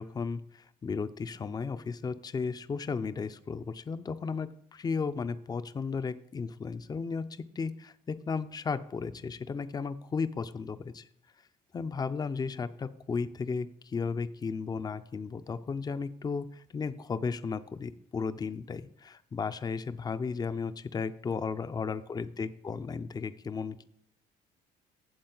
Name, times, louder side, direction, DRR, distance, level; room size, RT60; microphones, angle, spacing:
voice 1, 0.0-7.3 7.6-11.1 11.7-23.8, left 5 dB, 25° left, 12 dB, 0.5 m, -34 dB
8.7 x 7.4 x 3.9 m, 0.71 s
cardioid pair, 110°, 17 cm